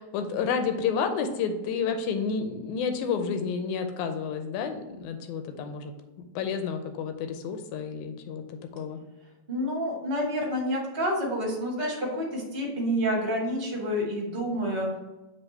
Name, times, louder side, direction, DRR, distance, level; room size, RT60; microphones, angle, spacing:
voice 1, 0.0-5.9 6.4-9.0, left 6 dB, 90° left, 7 dB, 2.1 m, -30 dB
voice 2, 9.5-14.9, equal, 25° right, -2 dB, 1.4 m, -28 dB
6.8 x 3.9 x 4.2 m, 1.1 s
omnidirectional pair, 3.4 m